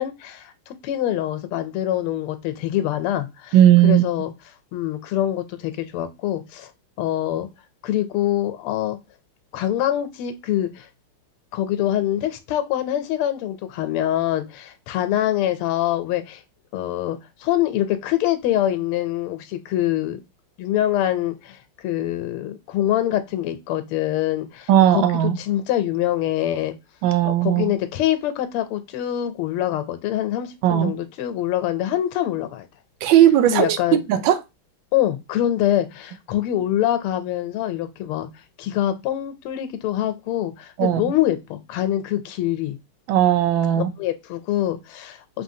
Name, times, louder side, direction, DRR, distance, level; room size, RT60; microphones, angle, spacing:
voice 1, 0.0-3.6 3.8-4.3 4.7-6.7 7.0-7.5 7.8-9.0 9.5-10.9 11.5-16.4 16.7-20.2 20.6-26.7 27.2-32.7 33.5-34.0 34.9-38.3 38.6-42.8 43.7-45.4, left 12 dB, 85° left, 1.5 m, -24 dB
voice 2, 3.5-4.0 24.7-25.4 27.0-27.7 30.6-30.9 33.0-34.4 40.8-41.1 43.1-43.9, right 11 dB, 75° right, 1.2 m, -17 dB
4.7 x 3.1 x 2.7 m
omnidirectional pair, 2.4 m